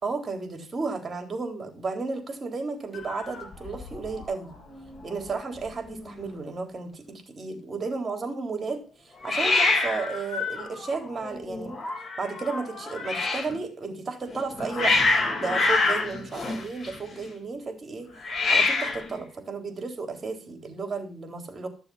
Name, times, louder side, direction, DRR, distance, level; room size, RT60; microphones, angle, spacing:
voice 1, 0.0-4.5 5.0-11.7 12.2-15.0 15.3-18.1 18.5-21.7, right 4 dB, 35° right, 5 dB, 3.8 m, -33 dB
Hiss, 2.9-4.3 4.5-5.0 5.3-5.4 5.5-6.2 9.2-13.5 14.3-17.2 18.2-19.1, left 3 dB, 35° left, 6.3 m, -27 dB
13.0 x 6.8 x 5.7 m, 0.35 s
cardioid pair, 90°, 0 cm